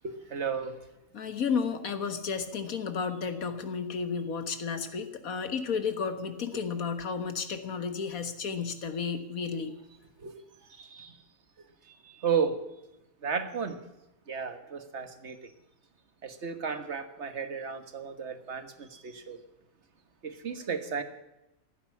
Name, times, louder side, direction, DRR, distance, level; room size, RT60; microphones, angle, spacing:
voice 1, 0.0-0.8 6.5-6.6 10.2-10.3 10.7-11.2 12.0-12.6 13.2-13.8 14.3-15.4 16.2-19.4 20.2-21.0, right 6 dB, 55° right, 1.7 m, -33 dB
voice 2, 1.1-9.7, left 5 dB, 80° left, 1.9 m, -32 dB
15.5 x 10.0 x 8.4 m
omnidirectional pair, 1.5 m